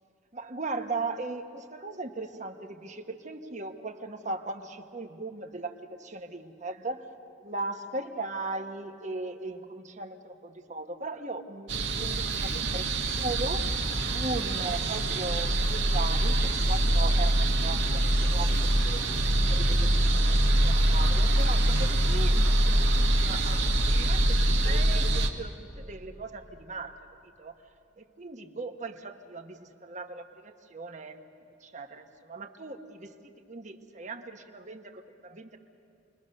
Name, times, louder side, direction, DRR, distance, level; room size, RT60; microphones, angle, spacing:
voice 1, 0.3-7.1 7.4-13.7 14.1-19.0 19.4-27.6 28.0-31.3 31.6-35.6, right 3 dB, 40° right, 6 dB, 1.3 m, -38 dB
sound 1, 11.7-25.3, right 1 dB, 75° right, 1.8 m, -24 dB
28.5 x 22.0 x 6.6 m, 2.7 s
head